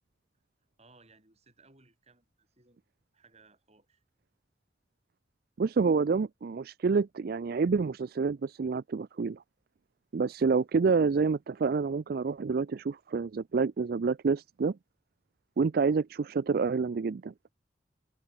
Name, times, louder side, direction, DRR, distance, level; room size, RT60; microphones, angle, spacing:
voice 1, 0.8-4.0, right 3 dB, 35° right, 7.6 m, -62 dB
voice 2, 5.6-9.4 10.1-14.8 15.6-17.3, right 4 dB, 55° right, 0.4 m, -28 dB
head